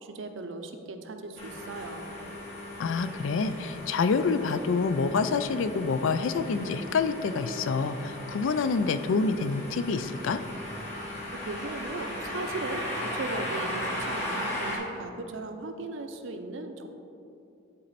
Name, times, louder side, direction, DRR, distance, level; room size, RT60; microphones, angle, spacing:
voice 1, 0.0-2.1 11.3-16.9, right 2 dB, 70° right, 6 dB, 0.6 m, -37 dB
sound 1, 1.4-14.8, left 1 dB, 30° left, 1.9 m, -37 dB
voice 2, 2.8-10.4, left 4 dB, 70° left, 11 dB, 0.4 m, -27 dB
10.5 x 4.2 x 4.1 m, 2.6 s
head